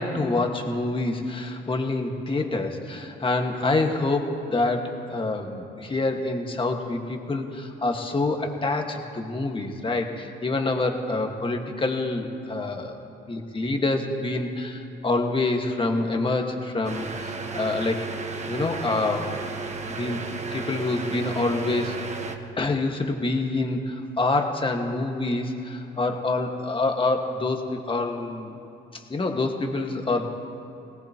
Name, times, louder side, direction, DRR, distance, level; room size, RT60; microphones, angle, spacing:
voice 1, 0.0-4.8 5.1-13.0 13.3-18.1 18.5-19.4 19.8-20.2 20.5-21.9 22.6-28.5 29.1-30.3, left 2 dB, 25° left, 3 dB, 1.7 m, -26 dB
sound 1, 16.8-22.4, right 4 dB, 35° right, 1.3 m, -34 dB
20.5 x 18.0 x 3.0 m, 2.9 s
cardioid pair, 90°, 20 cm